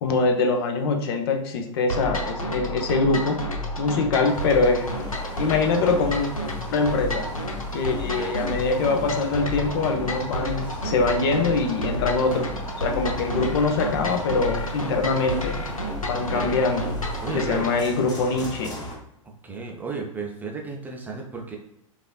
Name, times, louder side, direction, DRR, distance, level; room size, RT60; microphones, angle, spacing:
voice 1, 0.0-3.4 3.8-4.9 5.4-6.3 6.7-7.3 7.7-12.5 12.8-15.6 16.1-16.9 17.4-18.8, left 4 dB, 45° left, 4 dB, 0.6 m, -23 dB
sound 1, 1.9-17.8, equal, 85° left, 0.7 m, -30 dB
sound 2, 4.3-19.0, left 1 dB, 20° left, 0.9 m, -40 dB
voice 2, 8.0-8.6 16.1-16.7 17.2-17.7 19.4-21.6, right 4 dB, 10° right, 0 dB, 0.4 m, -34 dB
4.7 x 2.5 x 2.3 m, 0.82 s
figure-of-eight pair, 100°, 17 cm